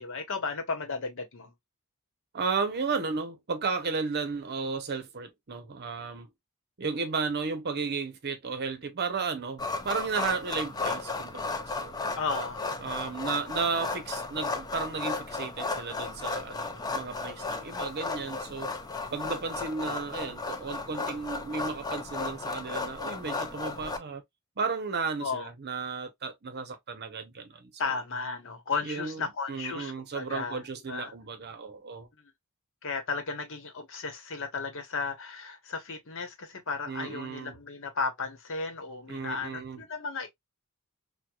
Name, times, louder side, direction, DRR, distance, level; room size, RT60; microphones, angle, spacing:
voice 1, 0.0-1.5 12.2-12.7 25.2-25.5 27.8-30.6 30.9-31.1 32.2-32.3 32.8-40.3, left 4 dB, 60° left, 1.0 m, -34 dB
voice 2, 2.3-6.3 6.8-12.0 12.8-18.7 19.1-24.2 24.6-27.7 28.8-29.2 29.5-32.1 36.9-37.6 39.1-39.8, right 4 dB, 50° right, 0.7 m, -34 dB
sound 1, 9.6-24.0, left 3 dB, 20° left, 0.4 m, -34 dB
4.5 x 2.2 x 2.3 m
head